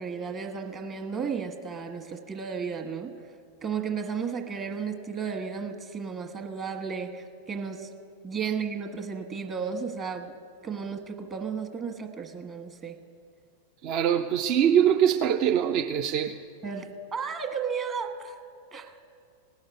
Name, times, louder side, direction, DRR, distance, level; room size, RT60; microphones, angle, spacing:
voice 1, 0.0-3.1 3.6-7.9 8.2-10.3 10.6-13.0 16.6-18.4 18.7-18.9, right 6 dB, 25° right, 5 dB, 1.3 m, -33 dB
voice 2, 13.8-16.4, right 9 dB, 40° right, 7 dB, 0.5 m, -23 dB
17.5 x 6.5 x 9.3 m, 2.4 s
figure-of-eight pair, 90°, 0 cm